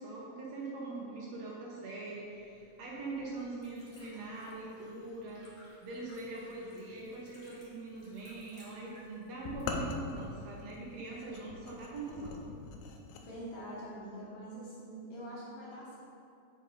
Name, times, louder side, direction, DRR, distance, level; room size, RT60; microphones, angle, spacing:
voice 1, 0.0-12.4, right 2 dB, 65° right, -4 dB, 1.9 m, -42 dB
Liquid, 2.2-10.7, left 2 dB, 35° left, 1.6 m, -62 dB
sound 1, 9.4-13.3, left 3 dB, 80° left, 2.1 m, -41 dB
voice 2, 13.1-16.0, right 1 dB, 60° left, -7 dB, 1.9 m, -44 dB
5.5 x 5.2 x 5.4 m, 2.5 s
omnidirectional pair, 3.6 m